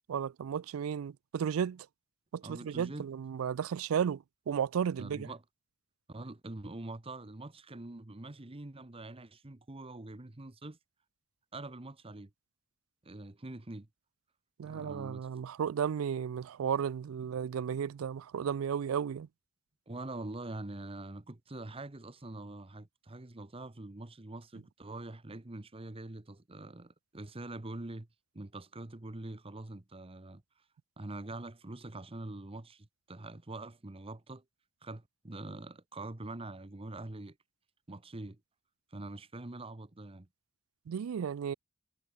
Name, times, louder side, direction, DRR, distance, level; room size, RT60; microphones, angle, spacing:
voice 1, 0.1-1.9 2.3-5.3 14.6-19.3 40.9-41.5, right 7 dB, 85° right, 0.4 m, -34 dB
voice 2, 2.4-3.1 5.0-5.4 6.1-10.8 11.5-12.3 13.0-13.9 14.6-15.3 19.9-28.1 28.3-30.4 31.0-34.4 34.8-37.4 37.9-38.4 38.9-40.3, right 2 dB, 25° right, 1.0 m, -44 dB
head